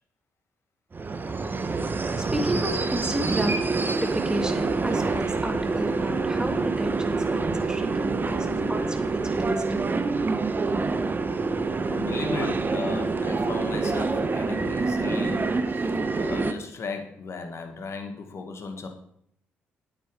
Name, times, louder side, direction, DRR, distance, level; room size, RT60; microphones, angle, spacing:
sound 1, 0.9-16.5, right 3 dB, 35° right, 1.3 m, -26 dB
voice 1, 2.2-3.7 4.0-10.2, right 1 dB, 15° right, 4 dB, 2.8 m, -32 dB
voice 2, 11.9-18.9, left 4 dB, 50° left, 5 dB, 2.2 m, -36 dB
9.4 x 9.2 x 5.1 m, 0.69 s
hypercardioid pair, 45°, 6 cm